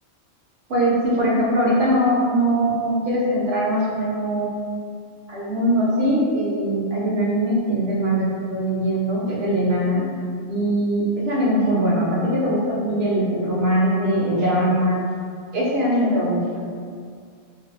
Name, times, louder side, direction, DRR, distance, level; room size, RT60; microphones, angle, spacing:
voice 1, 0.7-4.5 5.3-10.0 10.5-15.0 15.5-16.4, right 1 dB, 70° right, -5 dB, 0.9 m, -21 dB
2.5 x 2.2 x 2.4 m, 2.1 s
omnidirectional pair, 1.1 m